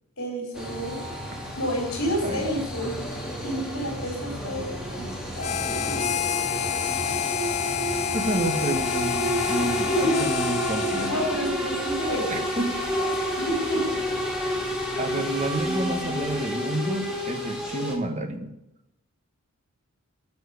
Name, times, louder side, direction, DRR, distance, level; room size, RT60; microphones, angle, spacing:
voice 1, 0.2-1.0 1.6-2.9 3.4-6.3 9.9-10.2 11.1-12.5 13.0-13.1 13.3-14.0, equal, 65° left, -2 dB, 4.2 m, -30 dB
sound 1, 0.5-17.9, equal, 5° right, 2.7 m, -30 dB
Harmonica, 5.4-11.4, left 8 dB, 30° left, 0.3 m, -28 dB
sound 2, 7.8-16.3, equal, 15° left, 3.7 m, -49 dB
voice 2, 8.1-11.1 12.3-12.8 15.0-18.5, right 1 dB, 35° right, 5 dB, 1.5 m, -29 dB
13.0 x 6.2 x 8.3 m, 0.86 s
head